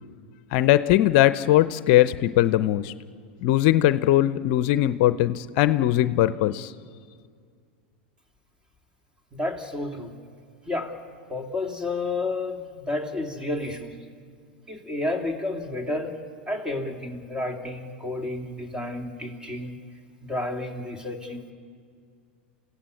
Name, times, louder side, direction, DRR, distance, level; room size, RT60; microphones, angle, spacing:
voice 1, 0.5-2.9 3.4-6.7, left 14 dB, 60° left, 13 dB, 0.6 m, -20 dB
voice 2, 9.3-10.2 10.7-11.0 11.3-14.0 14.7-16.2 16.5-19.8 20.2-21.5, left 2 dB, 15° right, 3 dB, 3.0 m, -31 dB
28.5 x 16.0 x 8.4 m, 2.2 s
hypercardioid pair, 100°, 6 cm